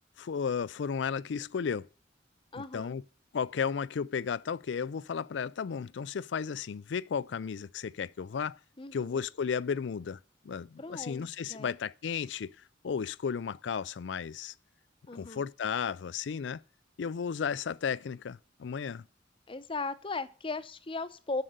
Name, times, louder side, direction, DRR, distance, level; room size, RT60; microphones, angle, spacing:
voice 1, 0.2-1.9 2.7-3.0 3.3-8.6 8.9-10.2 10.4-12.5 12.8-14.5 15.1-16.6 17.0-19.1, left 6 dB, 70° left, 0.4 m, -34 dB
voice 2, 2.5-2.9 8.8-9.2 10.8-11.8 15.1-15.4 19.5-21.4, left 3 dB, 30° left, 0.8 m, -37 dB
7.5 x 6.6 x 7.9 m
head